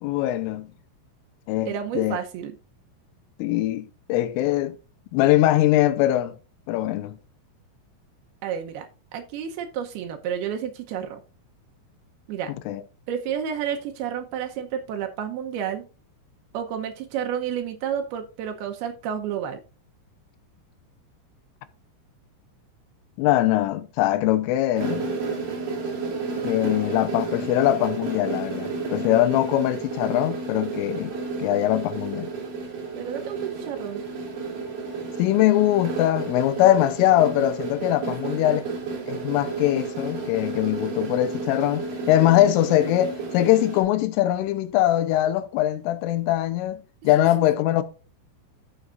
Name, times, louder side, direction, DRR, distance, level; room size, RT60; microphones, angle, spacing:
voice 1, 0.0-0.7 1.5-2.2 3.4-4.8 5.1-6.4 6.7-7.2 12.7-12.8 23.2-25.1 26.4-31.1 31.4-32.3 35.2-38.6 39.1-47.8, left 14 dB, 85° left, 3.4 m, -22 dB
voice 2, 1.7-2.6 8.4-11.2 12.3-12.5 13.1-15.8 16.5-19.6 33.0-34.0 38.0-38.4 47.2-47.4, right 8 dB, 80° right, 2.2 m, -31 dB
sound 1, 24.8-43.8, right 4 dB, 50° right, 4.1 m, -32 dB
14.0 x 6.4 x 2.5 m
omnidirectional pair, 5.6 m